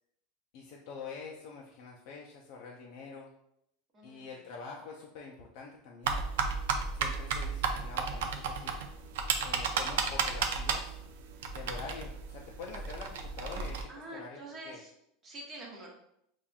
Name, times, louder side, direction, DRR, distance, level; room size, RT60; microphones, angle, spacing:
voice 1, 0.5-3.3 4.0-6.2 6.9-8.8 9.4-11.0 11.5-14.4 14.6-14.8, left 4 dB, 55° left, -1 dB, 0.5 m, -46 dB
voice 2, 3.9-4.3 13.9-14.9 15.2-15.9, right 1 dB, 25° right, -2 dB, 0.9 m, -46 dB
sound 1, 6.0-13.8, right 5 dB, 85° right, 0.5 m, -33 dB
5.5 x 2.5 x 2.3 m, 0.75 s
supercardioid pair, 150°, 0 cm